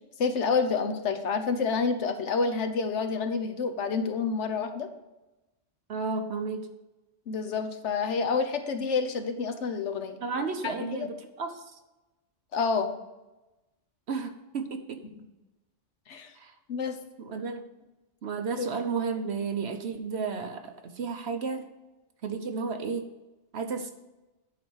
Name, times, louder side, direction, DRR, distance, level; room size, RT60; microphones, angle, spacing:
voice 1, 0.2-4.9 7.3-10.2 10.6-11.1 12.5-12.9 15.2-15.3 16.1-16.3 16.7-17.0 18.6-18.7, left 5 dB, 70° left, 7 dB, 1.2 m, -28 dB
voice 2, 5.9-6.7 10.2-11.6 14.1-15.0 16.4-16.5 17.2-17.7 18.2-21.7 22.2-23.1 23.5-23.9, right 5 dB, 65° right, 6 dB, 1.2 m, -33 dB
10.0 x 4.2 x 6.3 m, 1.0 s
omnidirectional pair, 1.2 m